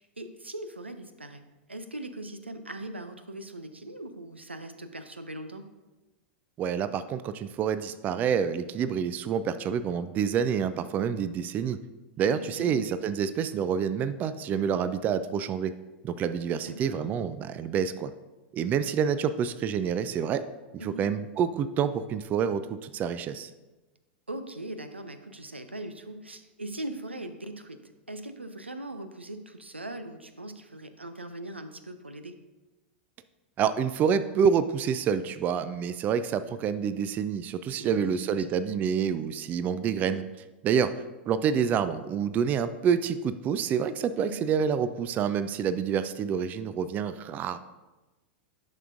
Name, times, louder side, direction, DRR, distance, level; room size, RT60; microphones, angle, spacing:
voice 1, 0.0-1.4 1.7-5.7 12.2-12.9 16.6-17.1 20.8-21.1 24.3-27.8 28.1-32.4 37.7-38.7 44.2-44.5, right 1 dB, 90° right, 9 dB, 0.5 m, -40 dB
voice 2, 6.6-11.8 12.2-15.7 16.0-18.1 18.5-20.4 20.7-23.5 33.6-40.2 40.6-40.9 41.3-47.6, right 7 dB, 30° right, 13 dB, 0.3 m, -27 dB
10.5 x 5.7 x 2.5 m, 1.1 s
figure-of-eight pair, 90°, 6 cm